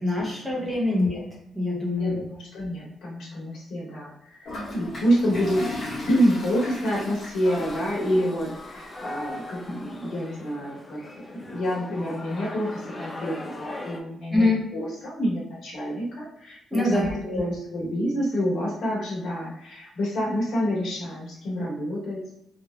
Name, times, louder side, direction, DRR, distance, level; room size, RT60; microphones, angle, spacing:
voice 1, 0.0-1.3 1.5-2.2 14.3-14.6 16.7-17.4, left 2 dB, 10° right, -4 dB, 0.8 m, -24 dB
voice 2, 2.0-5.6 6.1-11.0 11.3-17.1 17.3-22.2, equal, 75° left, -5 dB, 1.2 m, -28 dB
Toilet flush, 4.5-9.5, left 2 dB, 40° left, 1.2 m, -37 dB
sound 1, 7.4-14.0, left 2 dB, 20° left, 0.4 m, -39 dB
3.3 x 2.1 x 2.3 m, 0.78 s
cardioid pair, 145°, 0 cm